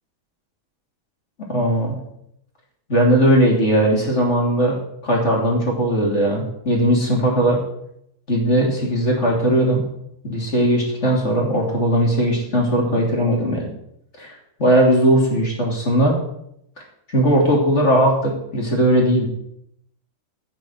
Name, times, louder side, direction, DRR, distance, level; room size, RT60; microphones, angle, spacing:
voice 1, 1.5-2.0 2.9-7.6 8.3-9.9 10.2-13.6 14.2-16.2 17.1-19.3, right 1 dB, 20° left, -1 dB, 2.7 m, -18 dB
15.0 x 6.5 x 6.5 m, 0.76 s
omnidirectional pair, 4.4 m